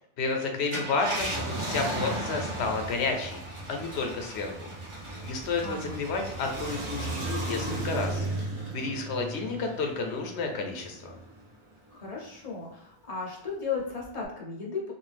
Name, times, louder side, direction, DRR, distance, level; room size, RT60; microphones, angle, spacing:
voice 1, 0.2-3.4 3.7-4.7 5.2-8.3 8.7-11.1, left 4 dB, 80° left, 3 dB, 0.9 m, -31 dB
Car, 0.6-11.4 11.9-12.0 14.0-14.3, right 1 dB, 35° right, 0.7 m, -35 dB
voice 2, 5.6-6.0 11.9-14.9, left 5 dB, 40° left, -2 dB, 0.7 m, -35 dB
2.6 x 2.3 x 3.3 m, 0.80 s
omnidirectional pair, 1.1 m